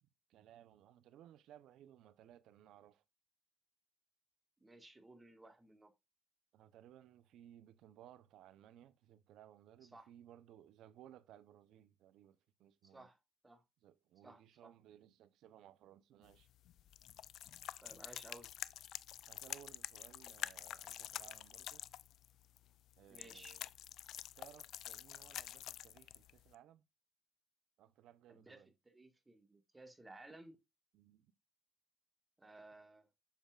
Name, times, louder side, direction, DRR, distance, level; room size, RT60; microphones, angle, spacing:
voice 1, 0.0-3.0 6.5-13.1 13.8-16.5 19.3-21.9 23.0-23.7 24.4-26.9 27.8-28.7 30.9-31.3, right 11 dB, 85° right, 0.7 m, -61 dB
voice 2, 4.6-5.9 9.9-10.1 12.8-13.2 13.4-13.6 14.2-14.7 17.8-18.5 23.1-23.6 28.3-30.6 32.4-33.1, right 2 dB, 20° right, 1.7 m, -57 dB
sound 1, 16.2-26.6, left 12 dB, 80° left, 0.4 m, -48 dB
7.5 x 7.0 x 2.4 m
cardioid pair, 90°, 0 cm